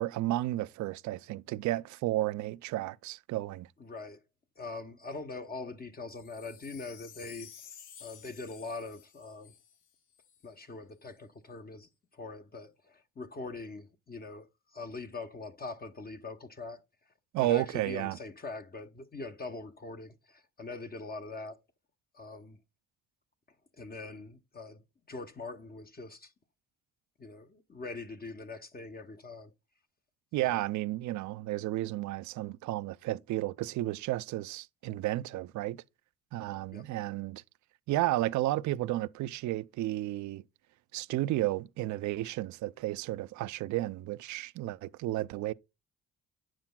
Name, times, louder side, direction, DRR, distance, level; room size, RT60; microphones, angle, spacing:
voice 1, 0.0-3.7 17.3-18.2 30.3-35.8 36.3-37.4 37.9-40.4 40.9-45.5, right 16 dB, 70° right, 0.5 m, -32 dB
voice 2, 3.8-4.2 4.6-7.5 8.0-9.5 10.4-16.8 17.4-21.6 22.1-22.6 23.8-26.3 27.2-29.5 30.4-30.6 36.7-36.8, left 3 dB, 30° left, 0.9 m, -43 dB
Wind chime, 6.1-10.5 11.0-11.1, left 9 dB, 90° left, 1.1 m, -53 dB
9.5 x 7.4 x 2.2 m
cardioid pair, 90°, 30 cm